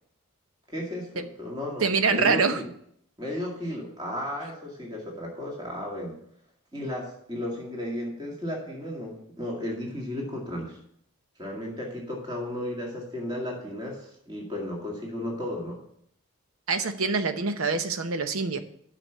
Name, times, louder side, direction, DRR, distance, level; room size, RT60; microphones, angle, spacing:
voice 1, 0.7-2.7 3.2-6.2 6.7-10.8 11.4-15.8, left 1 dB, 20° right, -2 dB, 2.1 m, -34 dB
voice 2, 1.8-2.6 16.7-18.6, right 4 dB, 75° right, 9 dB, 0.9 m, -25 dB
9.0 x 6.0 x 6.8 m, 0.69 s
head